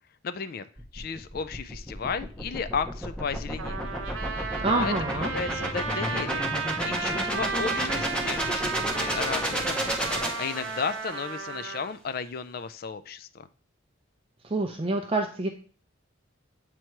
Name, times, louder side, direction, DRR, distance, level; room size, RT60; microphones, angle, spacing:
voice 1, 0.2-0.7 0.9-4.0 4.6-6.5 6.8-9.9 10.4-13.5, left 5 dB, 45° left, 13 dB, 0.3 m, -34 dB
sound 1, 0.8-11.1, equal, 5° left, 0.7 m, -32 dB
Trumpet, 3.6-11.9, right 5 dB, 80° right, 0.8 m, -34 dB
voice 2, 4.6-5.3 14.4-15.5, right 3 dB, 25° right, 3 dB, 0.5 m, -27 dB
7.5 x 2.9 x 4.5 m, 0.40 s
head